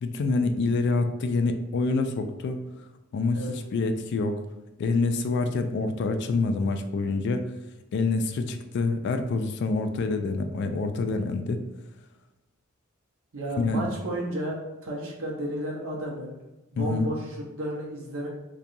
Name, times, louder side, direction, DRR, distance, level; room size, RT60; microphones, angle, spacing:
voice 1, 0.0-2.6 3.1-4.4 4.8-7.5 7.9-11.6 13.6-13.9 16.8-17.1, left 3 dB, 55° left, 7 dB, 0.3 m, -26 dB
voice 2, 13.3-16.4 16.7-18.3, right 1 dB, 80° right, -2 dB, 0.7 m, -33 dB
2.8 x 2.2 x 2.5 m, 1.0 s
head